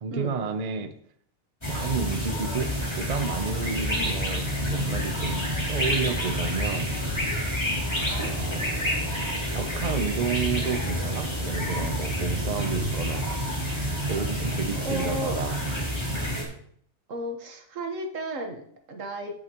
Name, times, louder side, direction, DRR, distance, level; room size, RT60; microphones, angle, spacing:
voice 1, 0.0-0.9 1.6-6.9 8.0-9.1 9.5-13.4 14.1-15.6, right 5 dB, 45° right, 8 dB, 0.5 m, -31 dB
sound 1, 1.6-16.4, equal, 20° left, 2.9 m, -28 dB
voice 2, 8.0-8.5 14.7-15.4 17.1-19.3, right 1 dB, 65° right, 4 dB, 1.7 m, -34 dB
15.5 x 6.6 x 3.0 m, 0.64 s
omnidirectional pair, 1.5 m